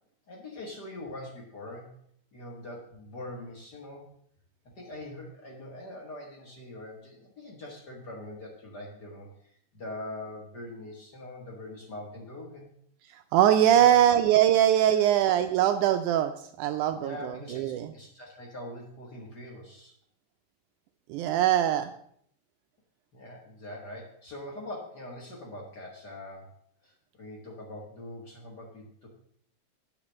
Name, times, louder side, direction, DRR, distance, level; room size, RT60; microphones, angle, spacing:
voice 1, 0.3-1.9 2.3-4.1 4.8-12.7 13.7-13.9 14.9-15.1 17.0-19.9 23.1-26.5 26.8-29.1, left 1 dB, 45° left, -1 dB, 1.5 m, -43 dB
voice 2, 13.3-16.3 16.6-17.9 21.1-21.9, right 11 dB, 80° right, 8 dB, 1.9 m, -22 dB
8.8 x 5.1 x 7.1 m, 0.66 s
omnidirectional pair, 3.8 m